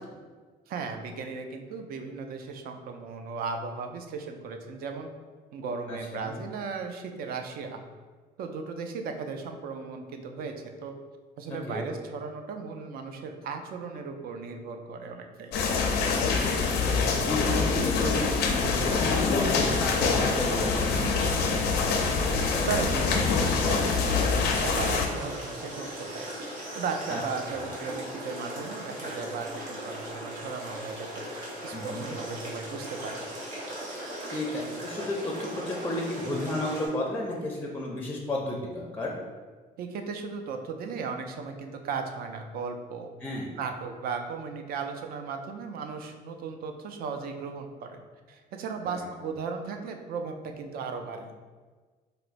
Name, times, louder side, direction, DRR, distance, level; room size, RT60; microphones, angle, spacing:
voice 1, 0.7-5.1 5.5-7.8 8.4-11.0 11.4-15.5 22.6-26.3 26.7-31.1 31.6-33.2 39.8-43.1 43.6-48.0 48.3-51.3, right 5 dB, 60° right, 5 dB, 0.4 m, -36 dB
voice 2, 5.9-6.3 11.7-11.9 16.4-17.0 17.2-18.4 18.7-21.8 27.1-27.2 31.7-32.1 34.3-39.1 43.2-43.5 48.8-49.1, left 1 dB, 10° left, -1 dB, 0.4 m, -33 dB
sound 1, 15.5-25.1, left 4 dB, 75° left, 0.5 m, -25 dB
sound 2, 18.7-36.9, right 1 dB, 85° right, 1.0 m, -38 dB
4.2 x 2.1 x 2.5 m, 1.4 s
cardioid pair, 110°, 17 cm